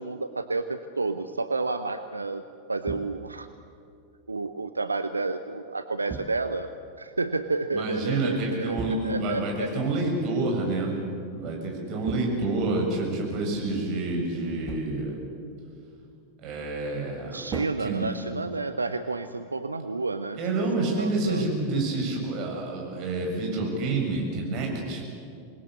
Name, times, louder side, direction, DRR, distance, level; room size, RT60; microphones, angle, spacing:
voice 1, 0.0-2.4 2.7-3.5 4.3-6.7 7.0-9.7 17.2-20.4 21.0-21.4, right 3 dB, 80° right, 10 dB, 0.8 m, -30 dB
sound 1, 2.9-3.5 6.1-6.8 8.8-9.4 12.1-13.0 14.7-15.2 17.5-18.6, right 5 dB, 25° right, 1.7 m, -39 dB
voice 2, 7.7-11.0 11.3-15.2 16.4-17.5 17.8-18.1 20.4-25.0, right 2 dB, 40° right, 0 dB, 7.6 m, -28 dB
27.0 x 20.5 x 8.5 m, 2.5 s
figure-of-eight pair, 90°, 0 cm